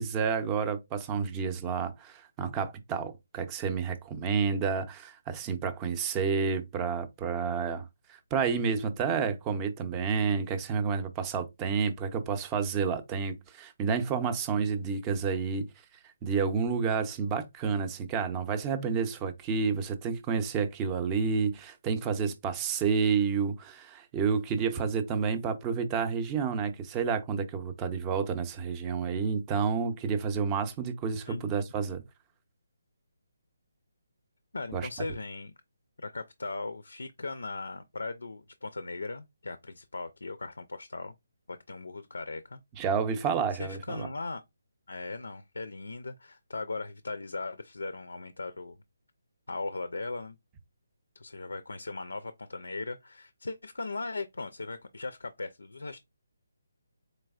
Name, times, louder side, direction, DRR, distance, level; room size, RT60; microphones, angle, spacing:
voice 1, 0.0-15.7 16.2-32.0 34.7-34.9 42.8-44.1, right 6 dB, 20° right, 0.6 m, -30 dB
voice 2, 31.3-31.6 34.5-35.5 36.0-41.1 41.5-42.6 43.5-44.4 44.9-48.7 49.5-50.4 51.1-56.0, left 3 dB, 80° left, 0.4 m, -38 dB
4.1 x 3.3 x 2.3 m
figure-of-eight pair, 150°, 0 cm